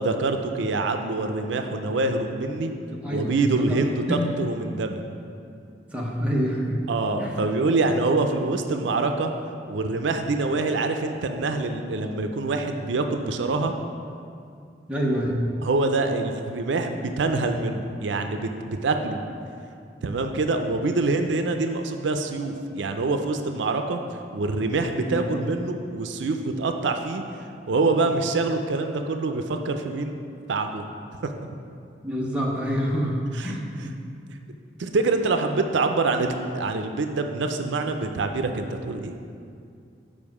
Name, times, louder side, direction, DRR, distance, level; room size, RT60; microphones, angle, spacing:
voice 1, 0.0-2.7 3.1-5.0 6.9-9.3 9.7-13.7 15.6-19.2 20.0-24.0 24.3-27.2 27.7-30.2 30.5-30.8 31.2-31.3 33.3-33.9 34.8-39.1, right 3 dB, 80° right, 6 dB, 0.5 m, -25 dB
voice 2, 2.9-3.3 3.7-3.8 4.1-4.3 5.9-6.8 7.2-7.3 14.9-15.4 25.0-25.3 32.0-33.9, equal, 5° right, -3 dB, 0.8 m, -27 dB
7.3 x 5.1 x 4.8 m, 2.4 s
head